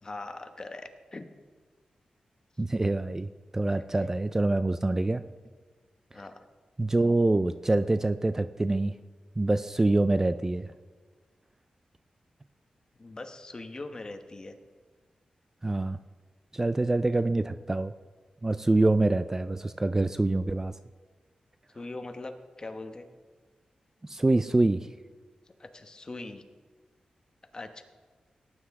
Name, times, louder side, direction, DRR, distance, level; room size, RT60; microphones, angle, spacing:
voice 1, 0.0-1.3 3.7-3.8 6.1-6.4 13.0-14.6 21.7-23.1 25.4-26.4 27.5-27.8, left 2 dB, 35° left, 7 dB, 1.0 m, -41 dB
voice 2, 2.6-5.2 6.8-8.9 9.4-10.7 15.6-16.0 16.5-17.9 18.4-20.7 24.0-24.9, right 2 dB, 20° right, 11 dB, 0.3 m, -25 dB
18.0 x 9.7 x 3.6 m, 1.4 s
wide cardioid pair, 100°, 2 cm